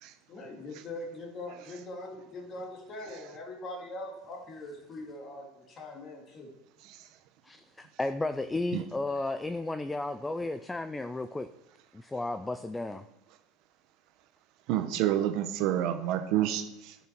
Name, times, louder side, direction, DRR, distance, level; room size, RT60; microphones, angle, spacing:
voice 1, 0.3-6.5 9.1-9.3, left 2 dB, 35° left, 2 dB, 2.1 m, -42 dB
voice 2, 7.4-11.5 11.9-13.0, left 2 dB, 10° left, 10 dB, 0.4 m, -33 dB
voice 3, 14.7-17.0, right 11 dB, 55° right, 9 dB, 0.9 m, -28 dB
11.0 x 6.1 x 4.5 m, 0.88 s
supercardioid pair, 140°, 0 cm